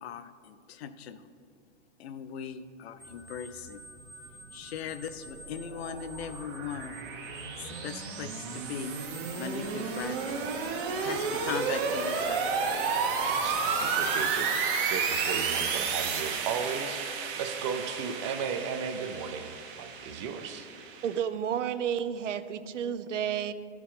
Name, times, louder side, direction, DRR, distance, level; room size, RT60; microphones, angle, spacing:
voice 1, 0.0-1.3 2.0-3.8 4.5-7.0 7.6-8.9 9.4-10.4 11.0-12.4, left 7 dB, 60° left, 11 dB, 0.6 m, -39 dB
sound 1, 3.0-14.3, right 1 dB, 5° right, 0.8 m, -49 dB
sound 2, 5.1-21.2, right 5 dB, 45° right, 1.1 m, -32 dB
voice 2, 13.2-17.0 17.4-20.7, right 6 dB, 25° right, 7 dB, 0.4 m, -35 dB
voice 3, 21.0-23.5, right 8 dB, 90° right, 12 dB, 0.6 m, -31 dB
11.5 x 4.6 x 4.2 m, 2.4 s
hypercardioid pair, 140°, 36 cm